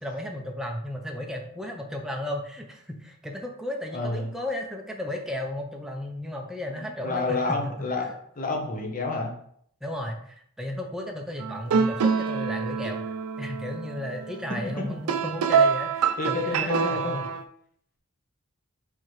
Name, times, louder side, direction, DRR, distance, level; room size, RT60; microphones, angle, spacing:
voice 1, 0.0-8.1 9.8-13.0 13.4-17.3, left 1 dB, ahead, 1 dB, 0.5 m, -34 dB
voice 2, 3.9-4.3 6.7-8.1 8.3-9.3 16.2-17.2, left 3 dB, 35° left, 1 dB, 0.9 m, -29 dB
sound 1, 11.4-17.4, right 6 dB, 90° right, 0.4 m, -26 dB
4.6 x 3.6 x 3.1 m, 0.66 s
head